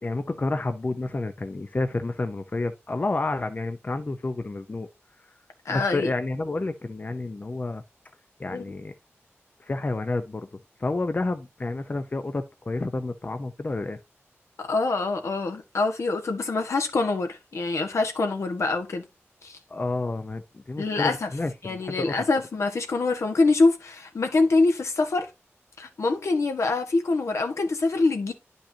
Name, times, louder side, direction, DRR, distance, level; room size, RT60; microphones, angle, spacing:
voice 1, 0.0-4.9 5.7-7.8 8.4-8.9 9.6-10.5 10.8-14.0 19.7-22.1, left 2 dB, 35° left, 0.7 m, -30 dB
voice 2, 5.6-6.1 8.5-8.7 14.6-19.0 19.4-19.6 20.8-21.3 21.6-25.3 25.8-28.3, left 3 dB, 80° left, 1.5 m, -25 dB
10.5 x 5.3 x 2.7 m
wide cardioid pair, 90°, 5 cm